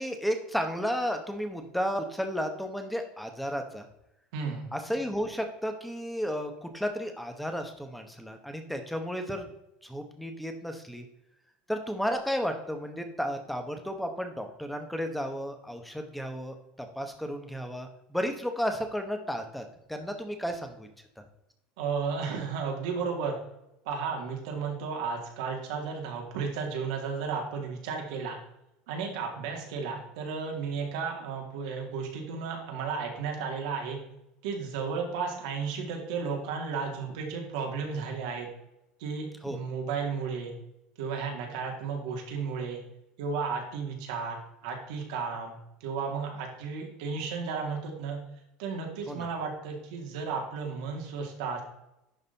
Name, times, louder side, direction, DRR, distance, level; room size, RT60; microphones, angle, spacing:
voice 1, 0.0-3.9 4.7-9.5 9.8-11.1 11.7-19.6 19.9-20.9 39.4-39.6 49.1-49.3, equal, ahead, 6 dB, 1.0 m, -33 dB
voice 2, 4.3-4.7 21.8-23.4 23.9-28.4 28.9-34.0 34.4-38.5 39.0-40.5 41.0-42.8 43.2-44.4 44.6-48.2 48.6-51.6, right 5 dB, 85° right, 1 dB, 2.3 m, -33 dB
11.0 x 4.1 x 4.0 m, 0.84 s
cardioid pair, 155°, 3 cm